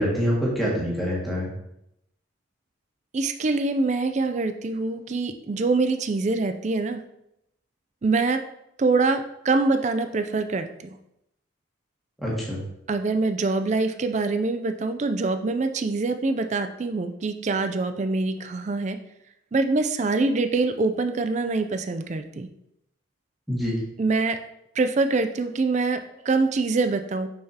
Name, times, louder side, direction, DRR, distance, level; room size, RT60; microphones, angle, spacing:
voice 1, 0.0-1.5 12.2-12.6 23.5-23.8, equal, ahead, -6 dB, 1.8 m, -25 dB
voice 2, 3.1-7.0 8.0-8.4 8.8-11.0 12.9-19.0 19.5-22.5 24.0-24.4 24.8-26.0 26.2-27.3, right 3 dB, 35° right, 8 dB, 0.4 m, -24 dB
6.3 x 5.8 x 2.8 m, 0.81 s
head